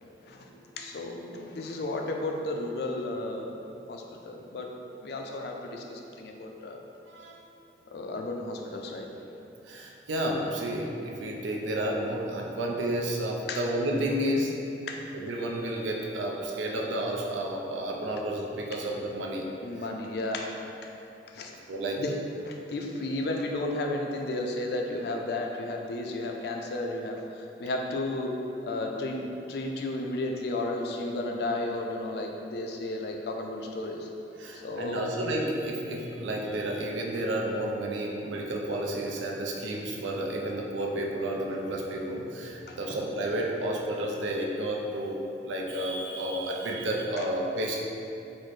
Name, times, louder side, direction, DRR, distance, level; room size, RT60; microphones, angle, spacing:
voice 1, 0.0-0.5 0.8-3.5 3.9-4.7 5.0-6.8 7.9-9.1 13.5-13.6 14.9-15.0 19.6-20.5 20.8-20.9 21.3-21.5 21.9-22.2 22.5-28.4 28.6-34.1 34.6-35.1 42.7-42.9 47.2-47.3, left 2 dB, 60° left, 2 dB, 0.3 m, -33 dB
voice 2, 7.1-7.4 9.7-14.5 15.1-19.5 21.7-22.0 34.4-45.2 45.4-47.8, right 1 dB, 90° right, -1 dB, 0.4 m, -31 dB
4.0 x 2.0 x 3.1 m, 2.8 s
head